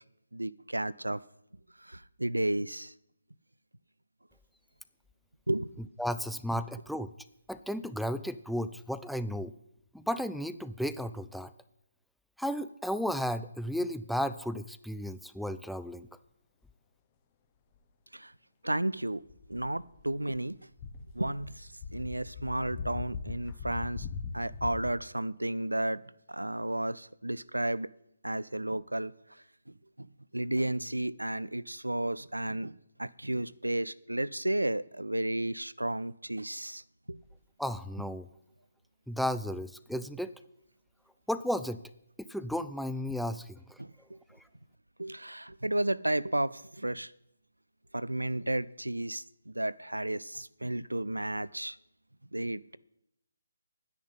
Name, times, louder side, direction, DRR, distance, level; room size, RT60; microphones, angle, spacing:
voice 1, 0.3-1.2 1.8-2.9 5.5-5.7 18.1-18.3 18.6-19.2 19.5-20.6 21.1-24.1 24.3-26.0 26.3-27.9 28.2-29.1 30.0-30.1 30.3-36.8 37.1-37.2 43.8-44.2 45.0-47.1 47.9-51.8 52.3-52.8, right 1 dB, 80° right, 0.4 m, -33 dB
voice 2, 6.0-7.1 7.5-9.5 9.9-11.5 12.4-16.1 37.6-38.3 39.1-40.3 41.3-41.8 42.2-43.8, equal, ahead, 0.3 m, -34 dB
sound 1, 19.3-20.4 20.7-24.9, left 5 dB, 20° left, 1.1 m, -40 dB
10.5 x 9.9 x 5.5 m
figure-of-eight pair, 140°, 0 cm